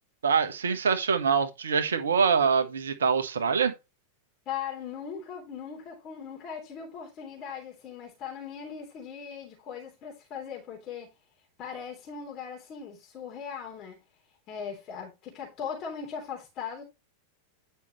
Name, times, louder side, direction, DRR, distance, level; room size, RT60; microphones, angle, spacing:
voice 1, 0.2-3.7, right 6 dB, 65° right, 1.3 m, -24 dB
voice 2, 4.4-11.1 11.6-14.0 14.5-16.8, left 7 dB, 35° left, 3.3 m, -39 dB
10.5 x 5.7 x 3.0 m
figure-of-eight pair, 90°, 0 cm